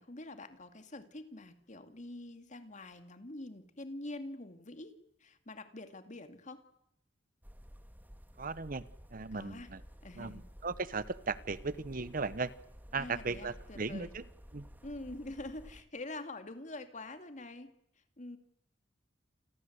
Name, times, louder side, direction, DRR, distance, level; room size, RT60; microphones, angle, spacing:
voice 1, 0.0-4.9 5.2-6.6 9.3-9.7 10.0-10.4 13.0-14.1 14.8-17.7 18.2-18.4, left 2 dB, 40° left, 8 dB, 2.4 m, -45 dB
sound 1, 7.4-15.8, equal, 10° right, 2.1 m, -53 dB
voice 2, 8.4-8.8 9.1-9.8 10.2-12.5 12.9-14.3 14.5-14.7, right 4 dB, 50° right, 16 dB, 1.0 m, -37 dB
29.0 x 22.0 x 8.1 m, 0.78 s
head